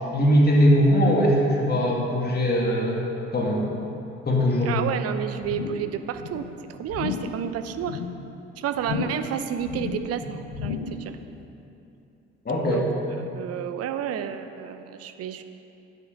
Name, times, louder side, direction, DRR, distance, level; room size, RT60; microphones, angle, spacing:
voice 1, 0.1-3.0 3.3-3.7 4.3-4.7 12.5-12.9, equal, 30° left, -3 dB, 2.3 m, -20 dB
voice 2, 4.6-8.0 8.6-11.2 12.7-12.9 13.2-15.4, right 9 dB, 45° right, 9 dB, 0.7 m, -31 dB
sound 1, 5.4-5.9 6.2-6.5 6.9-7.4 7.8-8.2 8.8-9.3 9.6-10.1 10.5-11.1 11.4-11.5, left 7 dB, 70° left, 1.0 m, -33 dB
9.3 x 8.0 x 5.6 m, 2.8 s
figure-of-eight pair, 50°, 33 cm